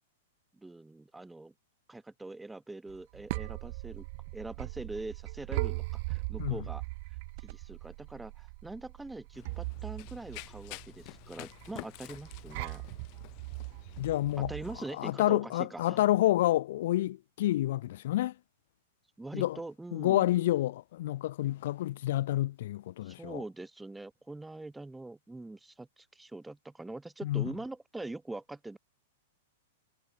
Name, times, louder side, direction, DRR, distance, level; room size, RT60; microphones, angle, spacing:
voice 1, 0.6-1.5 1.9-4.1 4.3-6.8 7.4-12.8 14.4-16.0 19.2-20.4 23.0-28.8, right 2 dB, 5° right, 1.0 m, -43 dB
sound 1, 2.9-14.8, right 25 dB, 35° right, 1.3 m, -39 dB
Run, 9.3-14.9, left 36 dB, 30° left, 6.5 m, -49 dB
voice 2, 14.0-14.5 15.0-18.3 19.3-19.6 19.9-23.4 27.2-27.5, left 14 dB, 45° left, 1.6 m, -29 dB
supercardioid pair, 180°, 0 cm